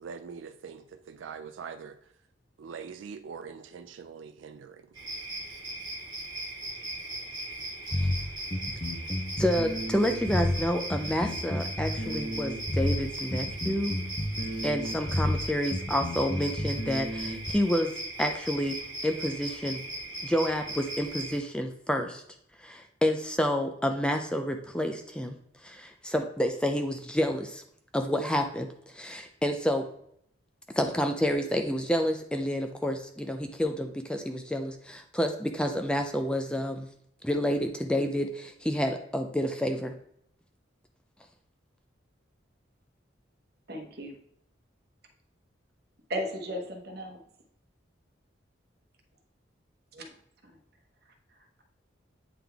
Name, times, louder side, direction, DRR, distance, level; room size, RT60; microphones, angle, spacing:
voice 1, 0.0-2.0 2.6-4.9, right 6 dB, 80° right, 9 dB, 0.4 m, -43 dB
sound 1, 4.9-21.4, right 1 dB, 25° right, 1.5 m, -38 dB
sound 2, 7.9-17.5, left 1 dB, 25° left, 0.8 m, -31 dB
voice 2, 9.4-13.9 14.6-18.8 19.0-19.8 20.2-22.2 22.6-27.6 27.9-29.8 30.8-36.9 37.2-39.9, equal, 5° left, 5 dB, 0.4 m, -29 dB
voice 3, 43.7-44.2 46.1-47.2 49.9-50.1 50.4-50.6, equal, 55° right, 3 dB, 1.0 m, -35 dB
8.6 x 3.8 x 3.4 m, 0.69 s
head